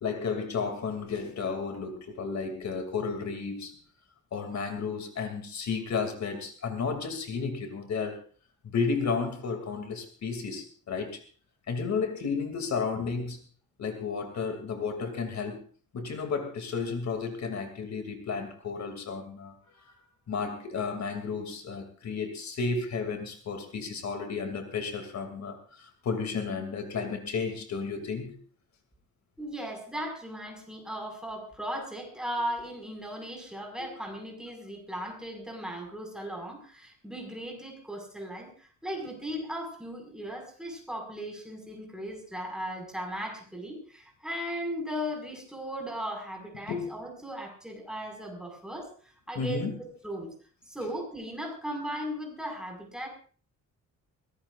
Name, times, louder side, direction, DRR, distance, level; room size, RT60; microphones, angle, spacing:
voice 1, 0.0-3.8 4.3-8.2 8.6-11.2 11.7-13.4 13.8-15.6 15.9-19.9 20.3-28.3 33.8-33.9 46.7-46.9 49.3-49.8, left 5 dB, 60° left, 6 dB, 2.7 m, -33 dB
voice 2, 29.4-50.3 50.7-53.1, equal, ahead, 1 dB, 5.3 m, -37 dB
22.5 x 18.0 x 2.5 m, 0.41 s
wide cardioid pair, 155°, 31 cm